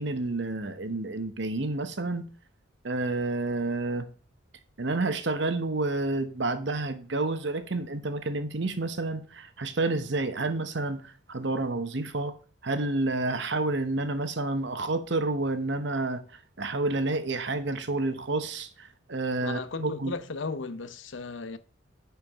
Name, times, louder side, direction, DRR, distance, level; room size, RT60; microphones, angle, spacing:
voice 1, 0.0-2.3 2.8-4.1 4.8-12.3 12.6-16.2 16.6-20.1, right 2 dB, 60° right, 0.9 m, -29 dB
voice 2, 19.4-21.6, left 4 dB, 70° left, 0.7 m, -35 dB
10.0 x 4.6 x 3.5 m
head